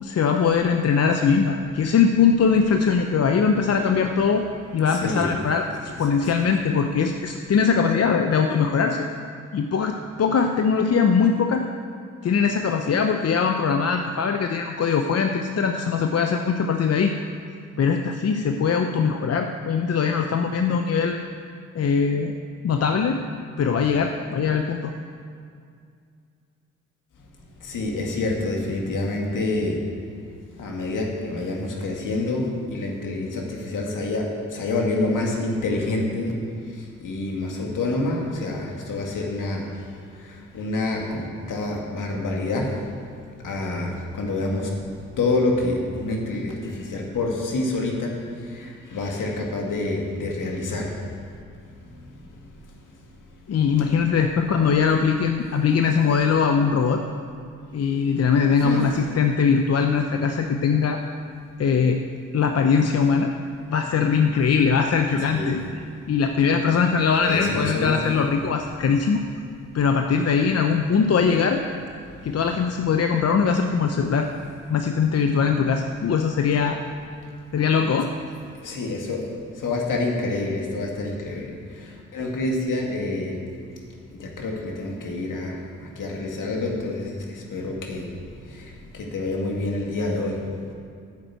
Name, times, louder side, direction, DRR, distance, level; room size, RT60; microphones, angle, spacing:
voice 1, 0.0-4.4 4.7-9.1 9.5-11.6 12.2-17.1 17.8-21.2 21.7-22.3 22.6-23.2 23.6-24.9 53.5-57.0 57.7-61.0 61.6-62.0 62.3-63.3 63.7-65.6 66.1-69.2 69.7-71.6 72.2-74.3 74.7-76.8 77.5-78.1, left 6 dB, 50° left, 5 dB, 0.7 m, -21 dB
voice 2, 4.9-5.3 6.2-6.3 27.6-29.8 30.6-36.3 37.0-39.7 40.2-42.7 43.4-44.7 45.2-48.2 48.5-50.9 58.6-58.9 65.3-65.6 67.2-68.0 78.6-79.3 79.6-81.5 81.8-83.4 84.2-88.1 88.5-90.4, left 2 dB, 70° left, 0 dB, 2.1 m, -27 dB
10.0 x 7.4 x 7.7 m, 2.3 s
supercardioid pair, 50°, 33 cm